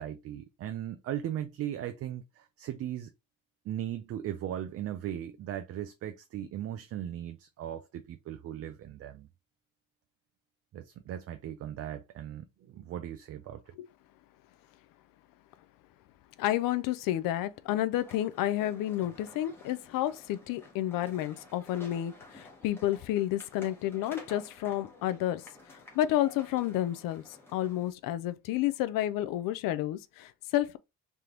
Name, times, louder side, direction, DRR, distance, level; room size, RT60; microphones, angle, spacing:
voice 1, 0.0-3.1 3.7-9.3 10.7-13.7, right 11 dB, 45° right, 0.4 m, -38 dB
voice 2, 16.4-30.8, left 13 dB, 90° left, 0.5 m, -31 dB
sound 1, 17.9-27.9, left 2 dB, 5° left, 1.0 m, -53 dB
3.4 x 3.0 x 3.7 m
cardioid pair, 170°, 32 cm